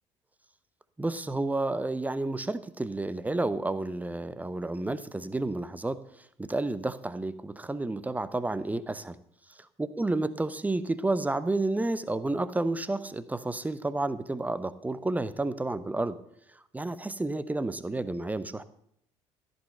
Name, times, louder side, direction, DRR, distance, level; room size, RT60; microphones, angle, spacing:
voice 1, 1.0-9.2 9.5-16.2 16.7-18.6, right 2 dB, 10° right, 15 dB, 0.8 m, -31 dB
14.5 x 5.5 x 7.7 m, 0.72 s
figure-of-eight pair, 55°, 15 cm